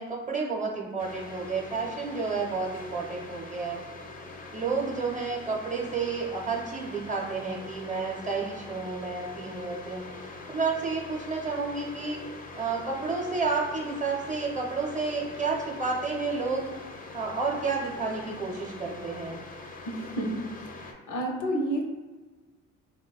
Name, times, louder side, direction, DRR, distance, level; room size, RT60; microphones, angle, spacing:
voice 1, 0.0-3.8 4.5-10.0 10.5-12.2 12.6-16.7 17.1-19.4, right 4 dB, 25° right, -2 dB, 0.6 m, -31 dB
sound 1, 1.0-20.9, left 3 dB, 30° left, 0.4 m, -43 dB
voice 2, 19.9-20.3 20.6-21.8, right 1 dB, 75° left, 2 dB, 0.6 m, -31 dB
3.3 x 2.1 x 2.3 m, 1.3 s
cardioid pair, 90°, 30 cm